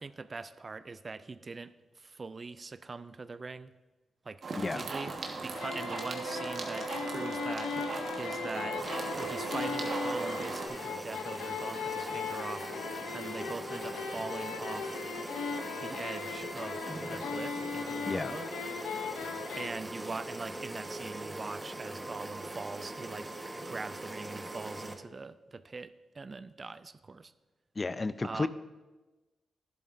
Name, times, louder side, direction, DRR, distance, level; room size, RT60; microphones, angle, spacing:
voice 1, 0.0-3.7 4.2-5.1 5.4-7.7 8.2-8.8 9.2-12.7 13.1-15.0 15.8-18.5 19.6-27.3 28.2-28.5, right 4 dB, 45° right, 14 dB, 0.4 m, -42 dB
sound 1, 4.4-10.7, right 3 dB, 60° right, 1.3 m, -37 dB
voice 2, 4.6-4.9 18.0-18.4 27.8-28.5, left 3 dB, 35° left, 13 dB, 0.5 m, -32 dB
sound 2, 5.5-19.7, left 6 dB, 85° left, 0.6 m, -38 dB
sound 3, 8.8-24.9, right 1 dB, 20° right, 1.1 m, -41 dB
11.5 x 10.5 x 2.5 m, 1.2 s
supercardioid pair, 45°, 0 cm